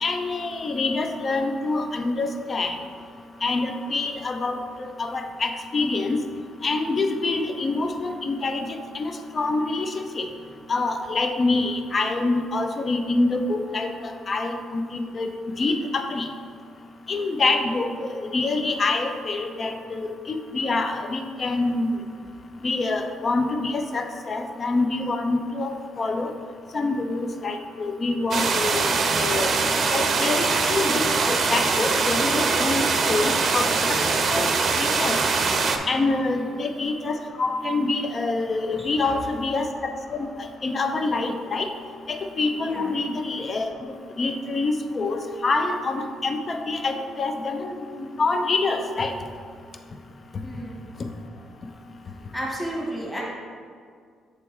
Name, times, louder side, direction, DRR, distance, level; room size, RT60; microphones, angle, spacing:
voice 1, 0.0-2.8 3.4-4.6 5.0-6.2 6.6-8.7 8.9-10.3 10.7-15.3 15.6-16.3 17.1-22.0 22.6-26.3 26.7-28.9 29.2-29.5 29.9-34.0 34.3-34.5 34.8-35.2 35.9-40.3 40.6-41.7 42.1-43.7 44.2-47.9 48.2-49.1, left 3 dB, 40° left, 5 dB, 0.6 m, -26 dB
sound 1, 28.3-35.8, right 4 dB, 55° right, 0.6 m, -22 dB
voice 2, 36.1-36.5 38.7-39.1 42.6-42.9 50.4-50.8 52.3-53.2, right 1 dB, 10° left, -4 dB, 1.5 m, -33 dB
7.1 x 3.4 x 4.6 m, 2.1 s
cardioid pair, 90°, 0 cm